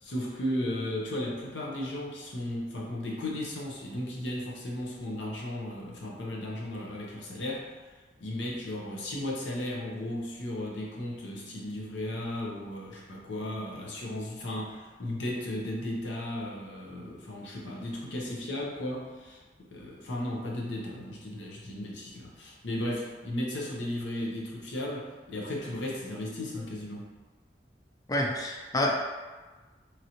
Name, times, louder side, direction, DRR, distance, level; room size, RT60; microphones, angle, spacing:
voice 1, 0.0-7.7 8.2-27.1, left 1 dB, 90° left, -2 dB, 0.7 m, -35 dB
voice 2, 28.1-28.9, left 1 dB, 20° left, 0 dB, 0.4 m, -28 dB
3.1 x 2.6 x 2.8 m, 1.3 s
head